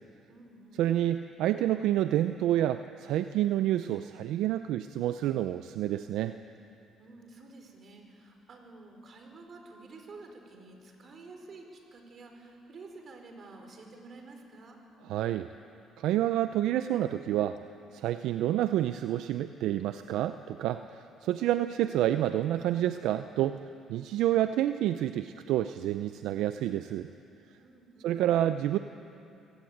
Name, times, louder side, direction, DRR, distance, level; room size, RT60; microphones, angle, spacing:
voice 1, 0.3-0.9 7.0-14.8 27.6-28.2, right 3 dB, 50° right, 3 dB, 4.5 m, -50 dB
voice 2, 0.8-6.3 15.1-15.5 16.0-17.6 17.9-23.6 23.9-27.1 28.0-28.8, right 12 dB, 80° right, 10 dB, 0.5 m, -28 dB
24.5 x 17.0 x 8.7 m, 2.7 s
supercardioid pair, 80°, 0 cm